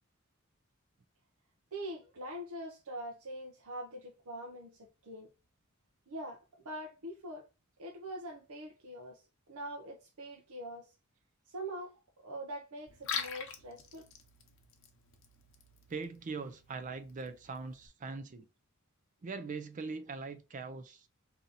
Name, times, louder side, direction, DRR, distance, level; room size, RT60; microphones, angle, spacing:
voice 1, 1.7-5.3 6.1-7.5 7.8-11.0 11.5-14.1, right 1 dB, 85° right, 0.7 m, -44 dB
Liquid, 12.9-17.9, left 7 dB, 60° left, 0.8 m, -44 dB
voice 2, 15.9-18.5 19.2-21.1, right 4 dB, 35° right, 0.4 m, -41 dB
3.9 x 2.8 x 4.0 m
head